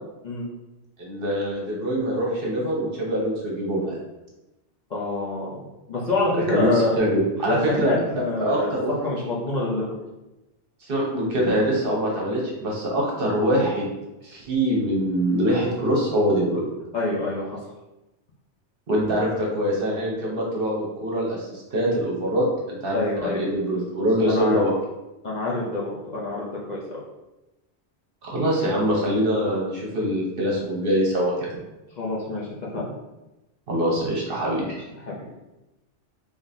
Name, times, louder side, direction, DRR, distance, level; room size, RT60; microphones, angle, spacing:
voice 1, 1.0-4.0 6.3-8.0 8.4-9.0 10.8-13.9 14.2-16.7 18.9-24.7 28.2-31.5 33.7-34.6, equal, 55° right, -3 dB, 1.0 m, -24 dB
voice 2, 4.9-5.6 5.9-6.9 7.4-8.7 9.0-9.9 16.9-17.6 22.9-23.5 24.2-24.6 25.2-27.0 32.0-32.5 32.7-32.9 35.1-35.2, left 2 dB, 45° left, -6 dB, 0.7 m, -26 dB
3.7 x 3.4 x 2.6 m, 1.0 s
omnidirectional pair, 1.2 m